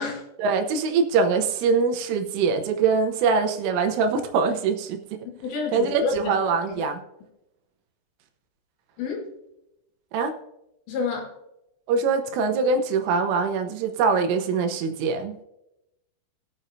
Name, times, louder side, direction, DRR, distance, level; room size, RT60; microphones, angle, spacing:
voice 1, 0.4-5.0 5.7-7.0 10.1-10.3 11.9-15.4, right 5 dB, 80° right, 5 dB, 3.4 m, -23 dB
voice 2, 5.4-6.4 9.0-9.3 10.9-11.3, left 4 dB, 65° left, 2 dB, 3.8 m, -28 dB
21.0 x 7.5 x 2.7 m, 0.88 s
omnidirectional pair, 5.9 m